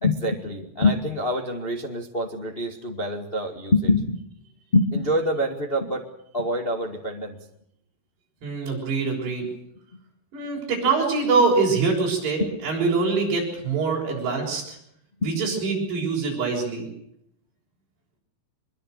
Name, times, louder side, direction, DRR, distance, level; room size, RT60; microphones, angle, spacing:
voice 1, 0.0-4.2 4.7-6.1 6.3-7.4 15.2-15.3, left 2 dB, 50° left, 3 dB, 0.6 m, -25 dB
voice 2, 8.4-9.5 10.3-14.8 15.2-16.9, right 4 dB, 65° right, -1 dB, 8.7 m, -24 dB
24.0 x 22.5 x 6.6 m, 0.74 s
omnidirectional pair, 5.1 m